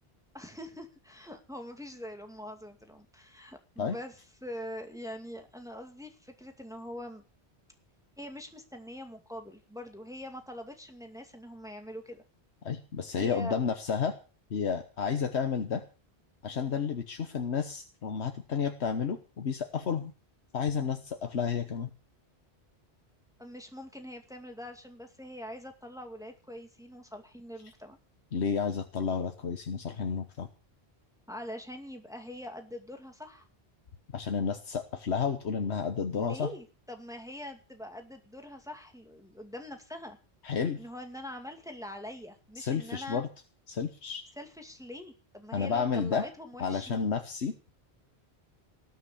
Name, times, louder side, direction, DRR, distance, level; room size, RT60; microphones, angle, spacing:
voice 1, 0.3-7.2 8.2-12.2 13.1-13.6 23.4-28.0 31.3-33.5 36.1-40.2 40.8-43.2 44.4-47.1, left 1 dB, 5° right, 4 dB, 2.3 m, -43 dB
voice 2, 12.6-14.2 14.5-15.8 16.4-20.1 20.5-21.9 28.3-30.5 34.1-36.5 40.4-40.8 42.6-43.3 43.7-44.2 45.5-46.2 46.6-47.5, left 6 dB, 85° left, 7 dB, 1.4 m, -31 dB
19.0 x 6.5 x 8.4 m, 0.34 s
omnidirectional pair, 1.1 m